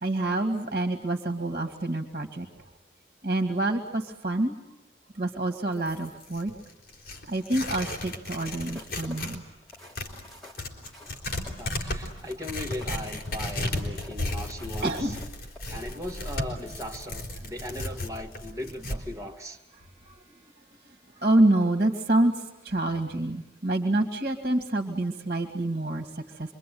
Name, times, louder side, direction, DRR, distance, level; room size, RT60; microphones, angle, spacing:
voice 1, 0.0-2.5 3.2-4.6 5.1-6.5 7.3-9.4 14.8-15.2 20.1-20.2 21.1-26.5, right 1 dB, 50° right, 4 dB, 2.0 m, -27 dB
Tearing, 5.7-9.4 9.7-19.0, left 1 dB, 60° left, 4.2 m, -35 dB
sound 1, 8.5-16.5 17.0-17.2, left 2 dB, 5° left, 4.0 m, -50 dB
voice 2, 11.4-15.1 15.7-19.6, left 1 dB, 20° right, 0 dB, 2.1 m, -38 dB
26.5 x 24.0 x 9.4 m, 0.87 s
head